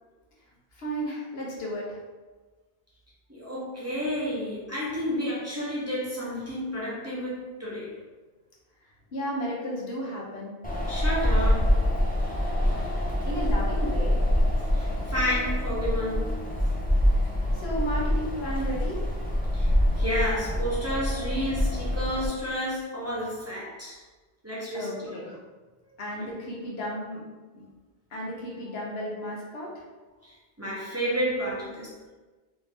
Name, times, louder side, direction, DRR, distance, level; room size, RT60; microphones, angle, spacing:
voice 1, 0.7-2.0 9.1-10.5 13.3-14.2 17.1-19.0 24.7-25.3 26.0-27.2 27.5-27.7 28.1-29.8, equal, 90° left, -4 dB, 1.2 m, -33 dB
voice 2, 3.3-7.9 10.9-11.8 14.7-16.4 19.5-24.0 24.4-25.4 26.1-26.3 30.2-31.9, equal, 15° right, -8 dB, 0.8 m, -31 dB
Wind, 10.6-22.3, left 1 dB, 15° left, 0.4 m, -25 dB
3.3 x 2.7 x 3.3 m, 1.2 s
omnidirectional pair, 1.0 m